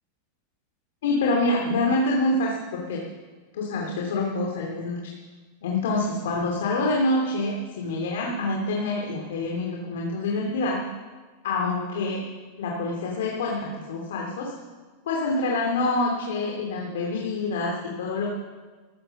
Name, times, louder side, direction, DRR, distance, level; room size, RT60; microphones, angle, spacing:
voice 1, 1.0-3.0 3.5-5.0 5.6-10.8 11.4-12.2 12.6-14.5 15.1-18.3, left 2 dB, 85° left, -1 dB, 2.7 m, -26 dB
14.5 x 14.0 x 5.9 m, 1.4 s
supercardioid pair, 175°, 0 cm